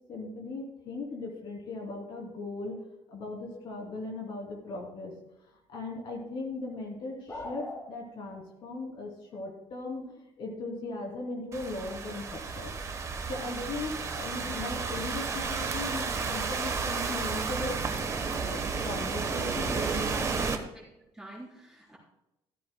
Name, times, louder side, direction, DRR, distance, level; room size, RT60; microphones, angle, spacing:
voice 1, 0.1-2.8 3.1-5.1 5.7-12.7 13.3-17.7 18.3-20.1, left 2 dB, 55° left, -1 dB, 3.0 m, -38 dB
sound 1, 7.3-7.8, left 1 dB, 25° left, 4.6 m, -39 dB
Thunderstorm / Rain, 11.5-20.6, right 5 dB, 30° right, 1.1 m, -32 dB
voice 2, 19.5-20.8 21.1-22.0, right 2 dB, 5° right, -4 dB, 4.0 m, -43 dB
14.5 x 14.0 x 2.2 m, 0.88 s
cardioid pair, 155°, 10 cm